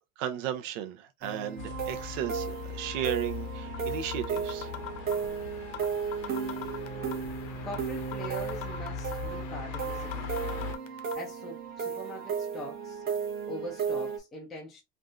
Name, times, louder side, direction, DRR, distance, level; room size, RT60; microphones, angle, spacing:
voice 1, 0.2-4.7, right 10 dB, 80° right, 0.9 m, -35 dB
sound 1, 1.2-14.2, right 6 dB, 25° right, 0.8 m, -35 dB
sound 2, 1.6-10.7, left 7 dB, 50° left, 0.6 m, -41 dB
sound 3, 3.7-3.8 4.1-5.3 5.7-5.9 6.1-7.3 7.7-7.8 8.1-9.3 9.7-9.8 10.1-11.1, left 12 dB, 85° left, 0.7 m, -40 dB
voice 2, 7.6-13.0 13.5-14.8, equal, ahead, 0.3 m, -42 dB
3.5 x 2.6 x 2.3 m
cardioid pair, 170°, 37 cm